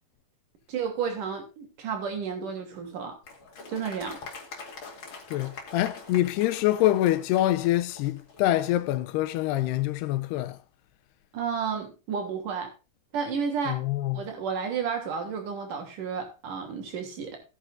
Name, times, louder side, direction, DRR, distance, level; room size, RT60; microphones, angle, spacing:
voice 1, 0.7-3.2 3.7-4.2 11.3-12.7 13.1-13.9 14.1-17.4, right 6 dB, 55° right, 4.2 m, -32 dB
Applause, 3.2-8.8, left 4 dB, 35° left, 2.5 m, -44 dB
voice 2, 5.3-10.6 13.7-14.2, left 14 dB, 85° left, 3.0 m, -25 dB
18.0 x 9.1 x 2.6 m
omnidirectional pair, 4.7 m